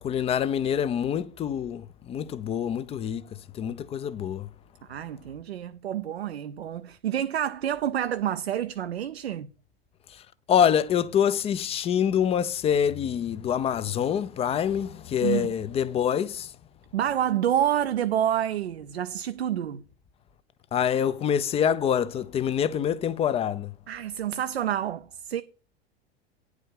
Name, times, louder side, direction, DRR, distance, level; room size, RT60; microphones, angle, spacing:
voice 1, 0.0-3.2 3.5-4.5 10.5-16.5 20.7-23.7, left 8 dB, 20° left, 0.5 m, -25 dB
voice 2, 4.9-9.5 15.2-15.5 16.9-19.8 23.9-25.4, right 10 dB, 70° right, 0.6 m, -28 dB
9.5 x 4.8 x 6.5 m
figure-of-eight pair, 85°, 32 cm